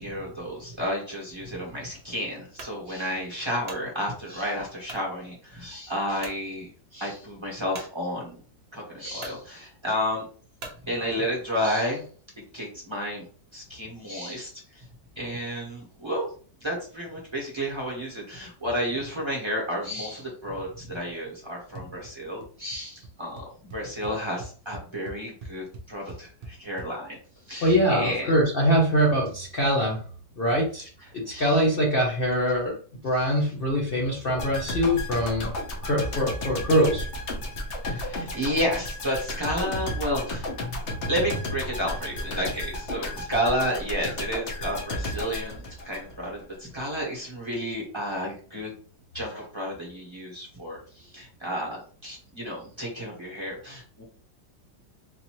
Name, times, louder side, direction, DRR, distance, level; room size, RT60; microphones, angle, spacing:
voice 1, 0.0-8.4 8.7-10.3 10.8-12.0 12.5-13.3 13.5-14.8 15.2-16.3 16.6-23.4 23.7-27.2 27.5-28.3 31.3-31.6 37.8-48.7 49.1-54.0, equal, 20° right, -4 dB, 0.9 m, -31 dB
sound 1, 2.6-2.8 3.4-3.9 4.8-5.1 5.6-5.7 6.2-6.4 7.7-7.9 8.7-8.8 9.2-9.4 10.6-10.8, right 3 dB, 45° right, 0.8 m, -41 dB
sound 2, 21.8-22.1 22.4-22.8 23.0-23.1 23.4-26.9, right 2 dB, 75° right, 0.5 m, -42 dB
voice 2, 27.6-30.0 30.4-30.9 31.1-32.8 33.0-35.5 35.8-37.1, equal, 70° left, -2 dB, 0.5 m, -23 dB
sound 3, 34.4-46.4 46.7-46.9, left 1 dB, 50° left, 0.9 m, -33 dB
3.9 x 2.7 x 2.9 m, 0.43 s
omnidirectional pair, 2.0 m